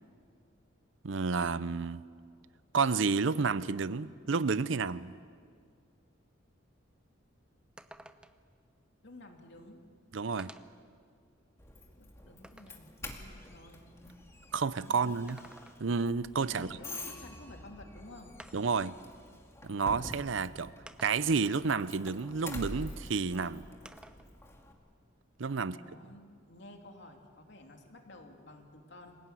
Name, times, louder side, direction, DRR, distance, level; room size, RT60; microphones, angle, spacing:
voice 1, 1.0-2.0 2.7-5.2 10.1-10.5 14.5-15.4 15.8-16.7 18.5-19.0 19.6-20.7 21.0-23.6 25.4-25.8, right 5 dB, 70° right, 0.6 m, -30 dB
sound 1, 6.8-6.9 7.3-7.4 7.8-8.5 9.6-9.7 10.4-10.9 11.4-12.9 15.1-16.1 17.5-17.6 18.4-18.9 19.9-20.0 20.9-21.5 23.9-24.3 24.7-25.8, right 1 dB, 5° right, 0.7 m, -54 dB
voice 2, 9.0-9.8 12.0-12.9 13.2-13.9 14.8-15.4 16.5-18.3 25.5-29.2, left 1 dB, 60° left, 3.0 m, -52 dB
Doorbell, 11.6-24.7, left 1 dB, 15° left, 2.2 m, -47 dB
26.5 x 17.5 x 9.3 m
head